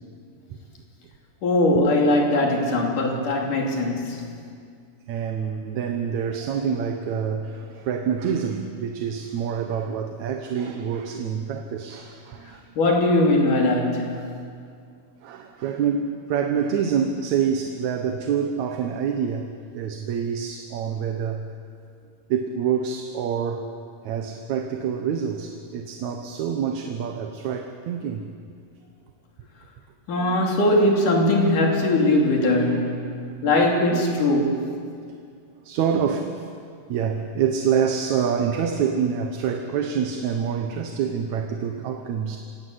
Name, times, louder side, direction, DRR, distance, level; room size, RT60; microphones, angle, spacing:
voice 1, 1.4-4.2 12.8-14.3 30.1-33.1 33.4-34.7, left 1 dB, 70° left, 0 dB, 4.4 m, -20 dB
voice 2, 5.1-12.7 15.2-21.5 22.3-23.7 24.0-28.3 30.2-30.6 32.6-33.6 33.9-34.0 34.3-34.6 35.6-36.5 36.9-42.4, right 7 dB, 65° right, 5 dB, 2.3 m, -27 dB
27.0 x 17.5 x 8.0 m, 2.2 s
omnidirectional pair, 3.8 m